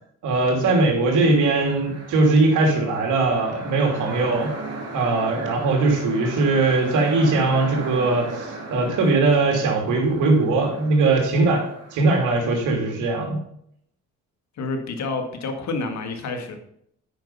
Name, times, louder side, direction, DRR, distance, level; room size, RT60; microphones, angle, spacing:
voice 1, 0.2-4.5 4.9-11.6 11.9-13.4, right 3 dB, 85° right, 1 dB, 2.8 m, -20 dB
sound 1, 1.0-12.4, right 3 dB, 55° right, 2.8 m, -37 dB
voice 2, 14.6-16.6, left 3 dB, 65° left, 5 dB, 1.8 m, -28 dB
8.9 x 5.5 x 5.5 m, 0.71 s
cardioid pair, 90°, 30 cm